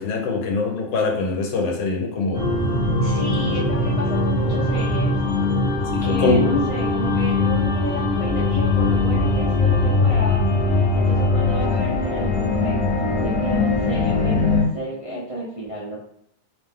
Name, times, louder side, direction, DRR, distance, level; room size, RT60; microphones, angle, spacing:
voice 1, 0.0-2.4 5.9-6.6, left 3 dB, 80° left, 2 dB, 1.5 m, -23 dB
sound 1, 2.3-14.6, left 3 dB, 40° left, 0.5 m, -21 dB
voice 2, 3.0-5.2 6.0-10.4 10.7-12.8 13.2-16.0, right 1 dB, 40° right, -6 dB, 0.4 m, -32 dB
3.5 x 3.3 x 3.5 m, 0.73 s
omnidirectional pair, 1.9 m